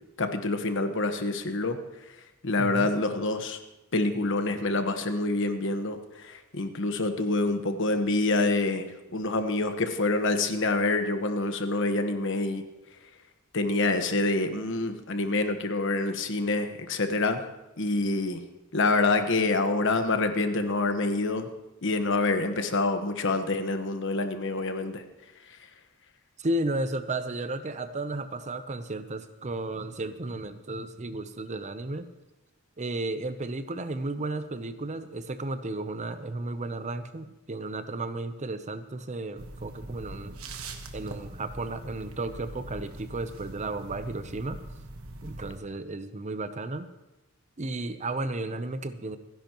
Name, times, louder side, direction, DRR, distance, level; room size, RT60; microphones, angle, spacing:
voice 1, 0.2-1.8 2.4-3.6 3.9-12.6 13.5-17.4 17.8-18.4 18.7-21.5 21.8-25.0, left 2 dB, 60° left, 7 dB, 1.3 m, -27 dB
voice 2, 2.6-2.9 26.4-32.1 32.8-40.4 40.9-44.6 45.2-46.9 47.6-49.2, right 2 dB, 35° right, 10 dB, 0.7 m, -33 dB
sound 1, 39.4-45.6, right 2 dB, 70° right, 1.3 m, -42 dB
28.0 x 10.5 x 3.0 m, 1.0 s
head